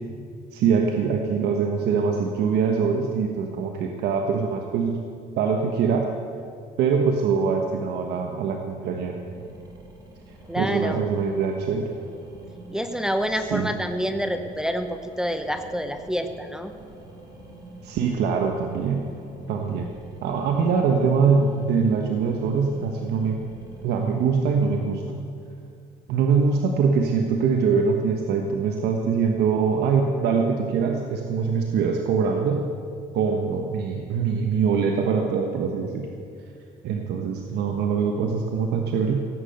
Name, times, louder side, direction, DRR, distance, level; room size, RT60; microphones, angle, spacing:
voice 1, 0.5-5.0 5.4-6.1 6.8-9.2 10.6-11.9 13.5-13.7 17.8-19.1 19.5-19.9 20.2-23.4 23.8-25.3 26.1-32.7 33.1-36.1 36.8-39.2, right 5 dB, 75° right, 3 dB, 1.2 m, -23 dB
sound 1, 9.1-24.3, right 2 dB, 25° right, 3.8 m, -45 dB
voice 2, 10.5-11.0 12.7-16.7, equal, 5° right, 7 dB, 0.8 m, -27 dB
17.0 x 8.6 x 7.9 m, 2.4 s
cardioid pair, 110°, 17 cm